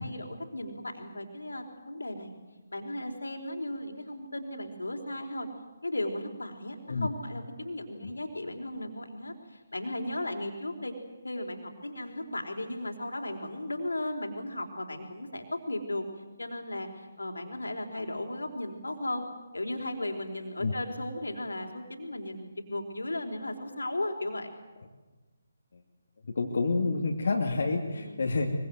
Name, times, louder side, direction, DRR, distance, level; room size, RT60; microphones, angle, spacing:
voice 1, 0.0-2.3 2.7-5.5 5.8-10.9 11.2-16.0 16.4-19.3 19.5-24.5 27.9-28.2, left 1 dB, 75° left, 4 dB, 4.4 m, -36 dB
voice 2, 26.3-28.5, left 3 dB, 55° left, 0 dB, 2.9 m, -28 dB
24.0 x 24.0 x 8.0 m, 1.2 s
figure-of-eight pair, 145°, 0 cm